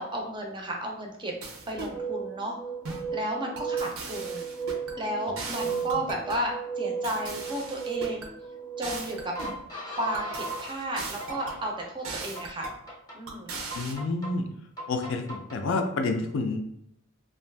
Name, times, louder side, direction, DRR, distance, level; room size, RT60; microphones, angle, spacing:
voice 1, 0.0-1.3 1.7-2.6 3.1-4.4 5.0-8.3 8.8-9.3 10.0-12.7 13.1-13.6, right 1 dB, 20° right, 1 dB, 0.5 m, -33 dB
sound 1, 1.4-2.0 2.8-3.1 3.6-5.0 5.4-6.5 7.0-8.3 8.8-9.6 10.1-11.6 12.0-12.8 13.3-13.9, right 3 dB, 75° right, 0.6 m, -39 dB
sound 2, 1.7-10.7 11.2-11.9 12.3-13.2 13.7-14.3 14.8-15.6, right 5 dB, 20° left, 0.6 m, -35 dB
voice 2, 13.7-14.5 14.9-16.6, left 3 dB, 65° left, 5 dB, 0.4 m, -29 dB
2.6 x 2.3 x 3.3 m, 0.75 s
head